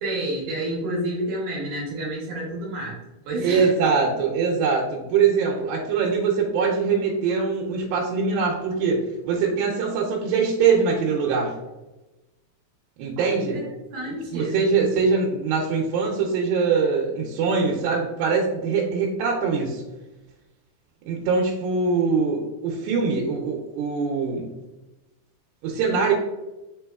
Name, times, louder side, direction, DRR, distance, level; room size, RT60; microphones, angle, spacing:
voice 1, 0.0-3.0 3.3-3.7 13.1-13.5 13.9-14.6, right 1 dB, 70° right, -3 dB, 2.2 m, -29 dB
voice 2, 3.4-11.6 13.0-13.6 14.3-19.8 21.1-24.5 25.6-26.1, right 5 dB, 85° right, -2 dB, 2.3 m, -23 dB
5.9 x 2.8 x 2.3 m, 1.0 s
omnidirectional pair, 4.0 m